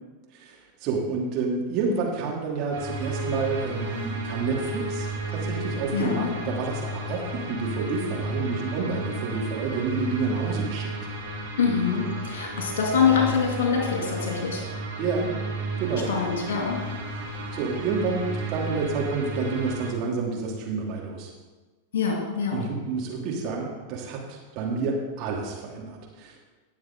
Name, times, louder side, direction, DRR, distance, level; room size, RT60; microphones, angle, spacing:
voice 1, 0.3-11.1 15.0-15.3 15.8-16.1 17.5-21.3 22.5-26.4, right 4 dB, 40° right, -2 dB, 2.8 m, -29 dB
sound 1, 2.7-19.9, right 2 dB, 60° right, 2.2 m, -33 dB
voice 2, 5.9-6.3 11.6-14.6 16.1-16.8 21.9-22.6, left 6 dB, 60° left, 0 dB, 2.9 m, -24 dB
19.0 x 7.2 x 3.8 m, 1.2 s
figure-of-eight pair, 90°, 0 cm